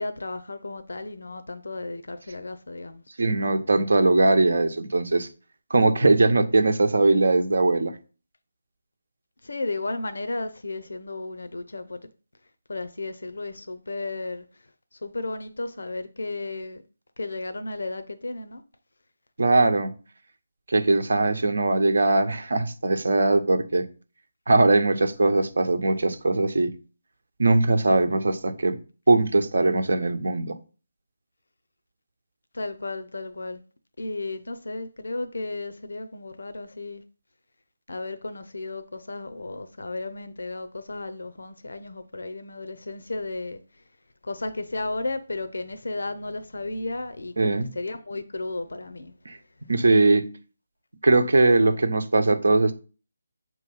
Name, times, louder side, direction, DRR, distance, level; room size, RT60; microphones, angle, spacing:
voice 1, 0.0-3.0 9.4-12.1 12.7-14.4 14.9-16.8 17.2-18.6 32.5-33.6 34.0-37.0 37.9-43.6 44.2-49.1, left 2 dB, 80° left, 0.6 m, -34 dB
voice 2, 3.2-5.3 5.7-7.9 19.4-19.9 20.7-23.9 24.5-26.7 27.4-28.8 29.1-30.5 47.4-47.7 49.3-49.4 49.7-50.3 51.0-52.7, right 2 dB, 75° right, 0.9 m, -20 dB
6.6 x 3.0 x 5.3 m
figure-of-eight pair, 160°, 0 cm